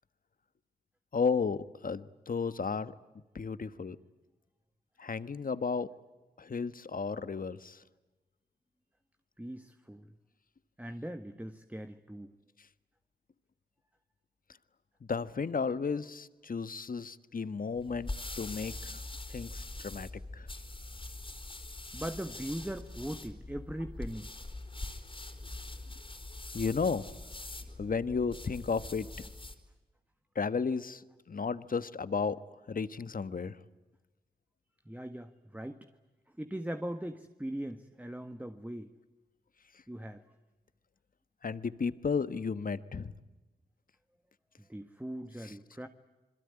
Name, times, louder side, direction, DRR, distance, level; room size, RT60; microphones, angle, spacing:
voice 1, 1.1-2.9 3.3-4.0 5.0-5.9 6.4-7.8 15.1-18.1 18.4-19.0 19.3-20.1 20.3-20.5 26.5-27.0 27.8-29.3 30.3-31.0 31.3-32.4 32.7-33.6 41.4-43.1 45.4-45.5, left 5 dB, 55° left, 13 dB, 1.3 m, -33 dB
voice 2, 9.4-10.1 10.8-12.3 21.9-24.3 34.8-35.8 36.4-38.9 39.9-40.2 44.6-45.9, right 1 dB, 10° right, 7 dB, 1.7 m, -40 dB
sound 1, 17.7-29.7, left 2 dB, 30° left, 4.2 m, -43 dB
27.5 x 22.0 x 9.9 m, 1.1 s
supercardioid pair, 40°, 18 cm